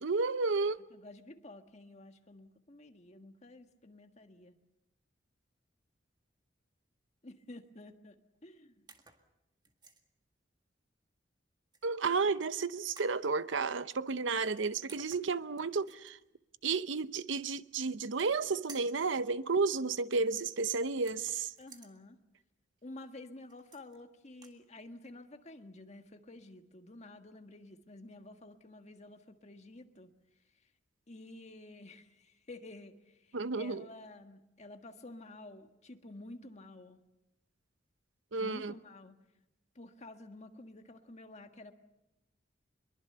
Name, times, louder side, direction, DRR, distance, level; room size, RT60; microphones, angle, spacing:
voice 1, 0.0-0.8 11.8-16.2 16.6-21.5 33.3-33.9 38.3-38.7, right 4 dB, 80° right, 0.8 m, -32 dB
voice 2, 0.9-4.5 7.2-8.8 21.6-22.2 22.8-30.1 31.1-37.0 38.4-39.2 39.7-41.7, left 2 dB, 40° left, 1.6 m, -51 dB
sound 1, 8.9-9.3 9.6-10.0 11.7-12.3 13.0-13.2 14.5-14.6 14.9-16.1 17.9-18.4 18.7-19.0 21.0-21.9 23.5-24.0 24.3-24.6, right 4 dB, 25° right, 1.9 m, -55 dB
23.5 x 22.5 x 6.8 m
head